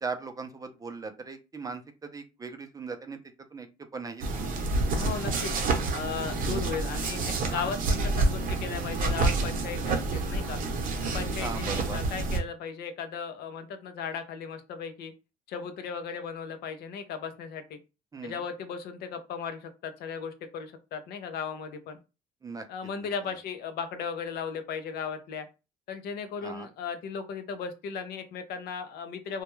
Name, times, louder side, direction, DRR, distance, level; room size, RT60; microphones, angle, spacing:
voice 1, 0.0-3.2 3.5-3.7 3.9-4.5 11.4-12.0 18.1-18.4 22.4-22.6 26.4-26.7, right 4 dB, 20° right, 6 dB, 0.4 m, -38 dB
sound 1, 4.2-12.4, right 3 dB, 55° right, 0.7 m, -28 dB
voice 2, 5.0-5.5 5.9-10.6 11.1-15.1 15.5-17.8 18.2-22.0 22.7-25.5 25.9-29.4, left 6 dB, 70° left, 9 dB, 0.5 m, -36 dB
2.2 x 2.2 x 3.0 m, 0.29 s
cardioid pair, 110°, 17 cm